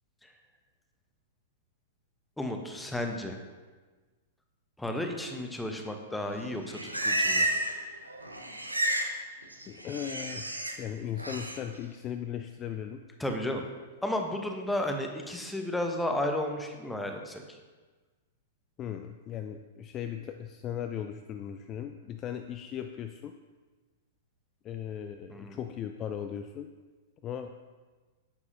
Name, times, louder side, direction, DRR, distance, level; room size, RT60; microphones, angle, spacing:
voice 1, 2.4-3.4 4.8-7.5 13.2-13.6 14.0-17.4 25.3-25.6, left 1 dB, 5° left, 4 dB, 0.9 m, -33 dB
Livestock farm animals working animals, 6.4-7.8 8.1-9.1 9.4-10.7 11.2-11.6, right 1 dB, 85° right, 0.9 m, -31 dB
voice 2, 9.7-13.0 18.8-23.3 24.6-26.7 27.2-27.5, left 9 dB, 30° left, 7 dB, 0.4 m, -38 dB
9.5 x 7.3 x 2.7 m, 1.3 s
figure-of-eight pair, 100°, 0 cm